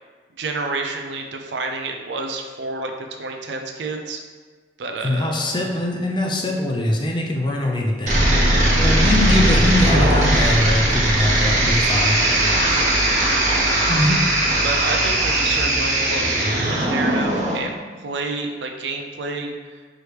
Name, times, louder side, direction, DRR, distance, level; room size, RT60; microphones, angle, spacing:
voice 1, 0.4-2.9 3.2-4.2 4.8-5.6 12.6-13.0 14.6-17.8 18.0-19.5, right 3 dB, 85° right, 3 dB, 0.5 m, -29 dB
voice 2, 5.0-8.2 8.8-12.2 13.9-14.2, left 1 dB, 25° left, 0 dB, 0.5 m, -22 dB
sound 1, 8.1-17.6, right 1 dB, 45° right, 1.0 m, -19 dB
4.7 x 3.0 x 3.2 m, 1.5 s
head